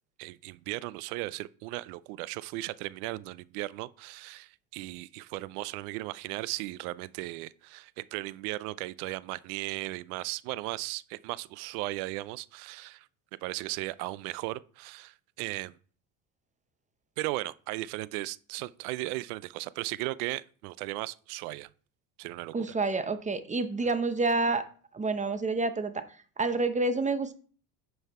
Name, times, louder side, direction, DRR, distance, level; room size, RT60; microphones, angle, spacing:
voice 1, 0.2-13.1 13.4-15.7 17.2-21.7 22.2-22.5, right 19 dB, 90° right, 0.6 m, -36 dB
voice 2, 22.5-24.6 24.9-26.0 26.4-27.3, right 3 dB, 15° right, 0.8 m, -28 dB
9.3 x 5.6 x 4.2 m
supercardioid pair, 110°, 43 cm